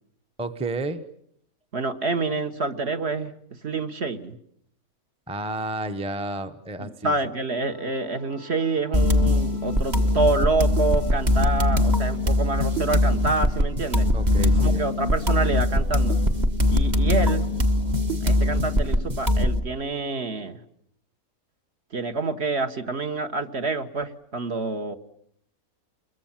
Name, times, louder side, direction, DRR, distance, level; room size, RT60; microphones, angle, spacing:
voice 1, 0.4-1.0 5.3-7.2 14.1-14.9, right 2 dB, 5° right, 9 dB, 0.9 m, -31 dB
voice 2, 1.7-3.3 3.6-4.4 6.8-14.1 14.6-16.2 16.7-17.5 18.2-20.6 21.9-24.9, right 3 dB, 50° right, 8 dB, 1.4 m, -27 dB
sound 1, 7.5-16.3, equal, 85° right, 5.9 m, -51 dB
sound 2, 8.9-19.6, left 1 dB, 30° right, 1.4 m, -21 dB
30.0 x 22.0 x 7.3 m, 0.70 s
omnidirectional pair, 1.5 m